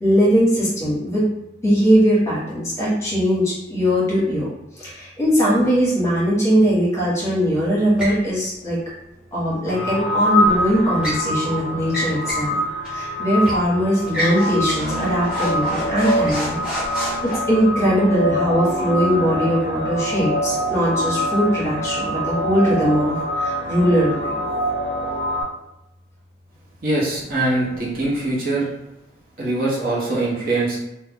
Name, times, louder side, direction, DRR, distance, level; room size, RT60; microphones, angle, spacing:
voice 1, 0.0-1.2 1.6-4.5 4.7-8.8 9.3-12.6 12.9-16.6 16.9-24.4, equal, 15° left, -8 dB, 1.2 m, -20 dB
sound 1, 8.0-8.2 10.4-11.2 11.8-12.5 12.8-13.0 13.4-13.7 14.1-17.4, equal, 5° right, 1.1 m, -28 dB
sound 2, 9.7-25.4, equal, 45° left, 0.5 m, -25 dB
voice 2, 26.8-28.7 29.4-30.8, right 2 dB, 50° right, -5 dB, 0.9 m, -22 dB
2.5 x 2.2 x 3.5 m, 0.88 s
head